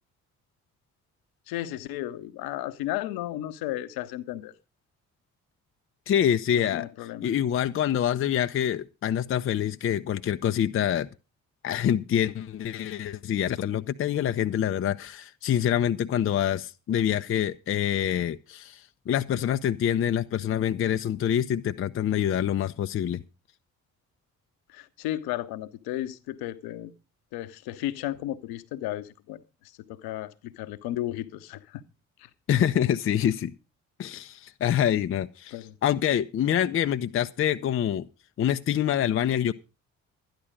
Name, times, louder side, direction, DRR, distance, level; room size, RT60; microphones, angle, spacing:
voice 1, 1.5-4.5 6.6-7.3 24.7-26.9 27.3-31.8 32.2-32.3 35.5-35.7, left 14 dB, 60° left, 0.9 m, -34 dB
voice 2, 6.1-6.9 7.2-11.1 11.6-23.2 32.5-33.5 34.0-35.5 35.8-38.1 38.4-39.5, left 10 dB, 30° left, 0.6 m, -26 dB
12.0 x 10.5 x 5.2 m
figure-of-eight pair, 40°, 42 cm